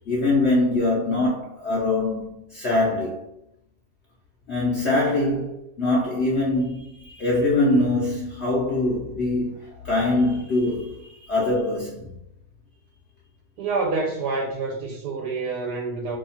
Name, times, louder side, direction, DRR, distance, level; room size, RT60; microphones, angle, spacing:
voice 1, 0.1-3.3 4.5-12.1, left 2 dB, 55° left, 0.9 m, -23 dB
voice 2, 13.6-16.2, right 3 dB, 75° right, 1.1 m, -27 dB
2.8 x 2.3 x 4.1 m
omnidirectional pair, 1.7 m